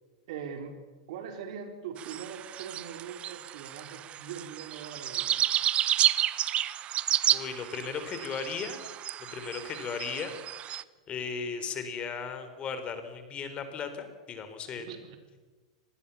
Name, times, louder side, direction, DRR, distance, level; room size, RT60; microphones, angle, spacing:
voice 1, 0.3-0.8 1.1-5.4 14.7-15.2, right 7 dB, 65° right, 5 dB, 4.7 m, -41 dB
sound 1, 2.0-10.8, right 12 dB, 35° right, 0.9 m, -31 dB
voice 2, 7.3-8.8 9.2-10.4 11.1-14.9, left 6 dB, 30° left, 8 dB, 4.3 m, -36 dB
25.5 x 20.0 x 7.2 m, 1.3 s
hypercardioid pair, 105°, 3 cm